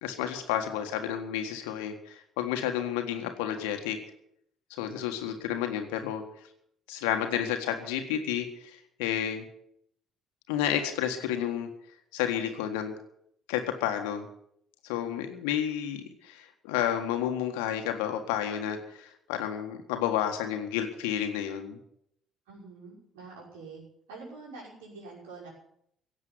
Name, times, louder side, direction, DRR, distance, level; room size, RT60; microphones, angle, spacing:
voice 1, 0.0-4.0 4.7-6.2 6.9-9.4 10.5-11.7 12.1-12.9 13.5-14.3 14.8-21.8, left 10 dB, 70° left, 6 dB, 1.6 m, -31 dB
voice 2, 22.5-23.8 24.1-25.5, right 3 dB, 70° right, -4 dB, 5.8 m, -46 dB
17.0 x 7.5 x 9.5 m, 0.71 s
figure-of-eight pair, 50°, 0 cm